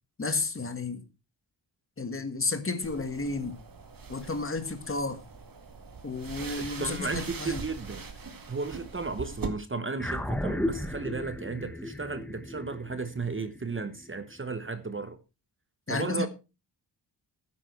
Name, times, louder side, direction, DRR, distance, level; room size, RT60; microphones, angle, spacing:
voice 1, 0.2-1.0 2.0-3.6 4.1-5.2 6.0-7.6 15.9-16.3, left 3 dB, 30° left, 1.6 m, -32 dB
sound 1, 2.8-9.5, right 5 dB, 50° right, 2.0 m, -42 dB
voice 2, 6.4-8.0 8.5-15.2 15.9-16.3, right 4 dB, 30° right, 1.0 m, -34 dB
sound 2, 10.0-14.6, left 1 dB, 5° left, 1.2 m, -35 dB
12.5 x 10.0 x 4.5 m
wide cardioid pair, 155°, 44 cm